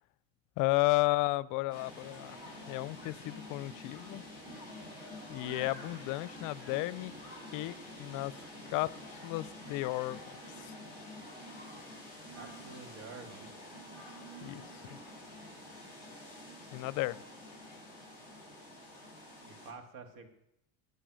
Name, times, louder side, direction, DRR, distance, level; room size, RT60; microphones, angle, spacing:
voice 1, 0.6-2.4 2.7-4.2 5.3-7.1 7.5-8.3 8.7-8.9 9.2-10.4 14.4-14.7 16.7-17.2, left 21 dB, 65° left, 20 dB, 0.6 m, -33 dB
sound 1, 1.7-19.7, left 1 dB, 15° right, 7.1 m, -48 dB
voice 2, 12.3-13.5 19.4-20.3, right 4 dB, 70° right, 6 dB, 2.4 m, -49 dB
19.5 x 6.9 x 6.3 m, 0.82 s
cardioid pair, 120°, 34 cm